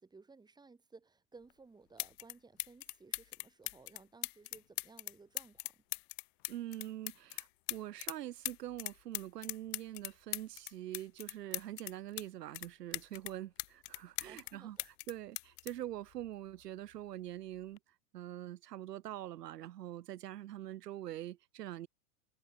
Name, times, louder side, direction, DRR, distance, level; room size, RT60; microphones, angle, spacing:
voice 1, 0.0-5.8 14.3-14.9, right 4 dB, 10° right, 7.3 m, -58 dB
sound 1, 1.5-1.6 2.0-2.3 2.6-8.2 8.4-12.3 12.5-14.5 14.8-16.6 17.6-17.8, left 26 dB, 40° left, 0.8 m, -41 dB
voice 2, 6.5-17.8 18.1-21.9, right 13 dB, 85° right, 3.4 m, -44 dB
supercardioid pair, 155°, 47 cm